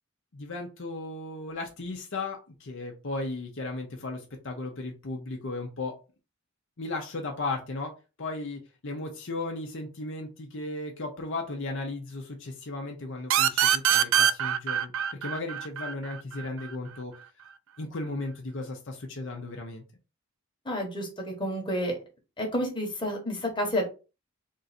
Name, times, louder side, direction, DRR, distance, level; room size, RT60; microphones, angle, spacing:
voice 1, 0.3-6.0 6.8-7.9 8.2-14.9 15.2-17.1 17.8-19.8, left 2 dB, 55° left, 2 dB, 0.8 m, -35 dB
sound 1, 13.3-16.7, right 9 dB, 60° right, 0.3 m, -24 dB
voice 2, 20.6-21.9 22.4-23.9, equal, 20° left, 0 dB, 1.2 m, -30 dB
3.7 x 2.6 x 4.2 m, 0.31 s
head